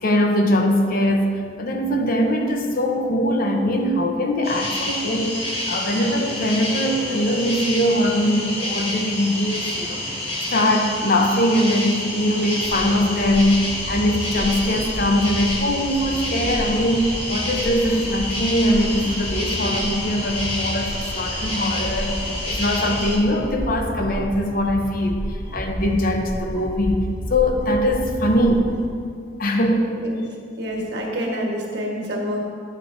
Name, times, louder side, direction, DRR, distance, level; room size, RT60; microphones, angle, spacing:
voice 1, 0.0-10.1 10.5-28.8 29.4-29.9, equal, 55° left, 3 dB, 0.8 m, -21 dB
sound 1, 4.4-23.2, left 1 dB, 35° left, 1.7 m, -28 dB
sound 2, 12.5-28.9, equal, 10° right, 1.9 m, -32 dB
voice 2, 30.6-32.4, equal, 70° right, -1 dB, 1.4 m, -27 dB
10.5 x 7.4 x 2.7 m, 2.2 s
head